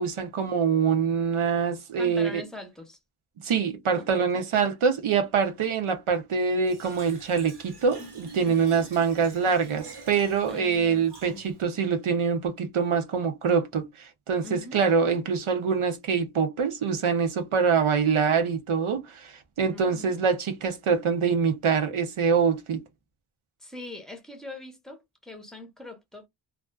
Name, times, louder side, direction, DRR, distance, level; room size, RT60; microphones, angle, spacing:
voice 1, 0.0-2.4 3.4-22.8, right 6 dB, 85° right, 0.7 m, -25 dB
voice 2, 2.0-3.0 3.9-4.1 4.3-4.5 8.4-8.8 10.5-11.5 14.4-14.9 19.7-20.3 23.6-26.3, left 2 dB, ahead, 0.7 m, -42 dB
Fill (with liquid), 6.6-11.6, right 4 dB, 55° right, 0.9 m, -46 dB
2.4 x 2.2 x 2.2 m
wide cardioid pair, 75°, 48 cm